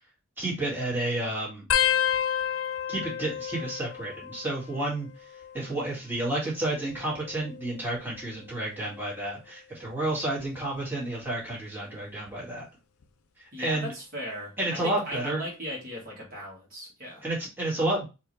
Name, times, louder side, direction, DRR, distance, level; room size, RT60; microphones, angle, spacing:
voice 1, 0.4-1.6 2.9-12.7 13.4-13.9 14.6-15.4 17.2-18.1, right 1 dB, 10° right, -6 dB, 1.8 m, -31 dB
sound 1, 1.7-4.9 5.2-5.8 6.7-8.2 8.8-9.2 10.4-10.8 12.3-12.4, left 9 dB, 85° left, 0.5 m, -31 dB
voice 2, 13.5-17.2, equal, 45° right, -3 dB, 1.7 m, -38 dB
4.6 x 2.9 x 3.1 m, 0.27 s
head